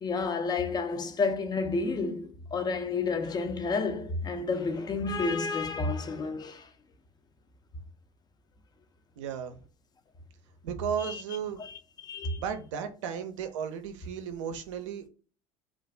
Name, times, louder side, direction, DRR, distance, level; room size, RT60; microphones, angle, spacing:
voice 1, 0.0-6.7 11.0-11.2 11.6-12.4, left 4 dB, 25° left, 0.4 m, -30 dB
voice 2, 9.2-9.6 10.6-11.6 12.4-15.1, right 8 dB, 75° right, 0.5 m, -34 dB
2.4 x 2.3 x 3.2 m
hypercardioid pair, 65°, 16 cm